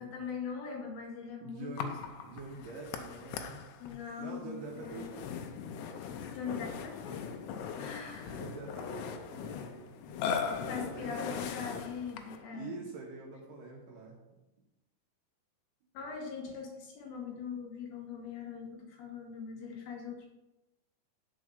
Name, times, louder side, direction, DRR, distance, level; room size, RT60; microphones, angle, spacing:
voice 1, 0.0-1.9 3.8-5.0 6.0-8.4 10.7-12.7 15.9-20.3, left 5 dB, 75° left, 1 dB, 2.6 m, -42 dB
voice 2, 1.4-3.6 4.2-5.2 8.3-11.4 12.5-14.2, right 3 dB, 70° right, -1 dB, 2.3 m, -46 dB
Burping eructation, 1.8-12.5, left 6 dB, 90° left, 2.7 m, -40 dB
6.3 x 4.6 x 6.6 m, 1.0 s
omnidirectional pair, 4.8 m